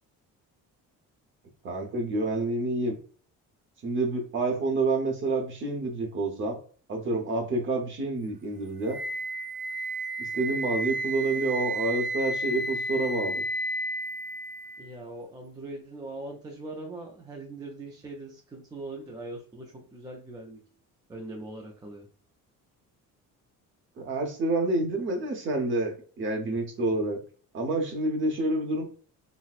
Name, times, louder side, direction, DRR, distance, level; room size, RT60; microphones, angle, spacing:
voice 1, 1.6-2.9 3.8-6.6 6.9-9.0 10.2-13.4 24.0-27.2 27.5-28.8, right 2 dB, 35° right, 3 dB, 0.8 m, -28 dB
Wind instrument woodwind instrument, 8.9-14.9, right 1 dB, 85° right, 0.7 m, -32 dB
voice 2, 14.8-20.6 21.1-22.1, right 2 dB, 15° right, 0 dB, 0.3 m, -41 dB
4.1 x 2.0 x 2.3 m, 0.42 s
cardioid pair, 175°, 33 cm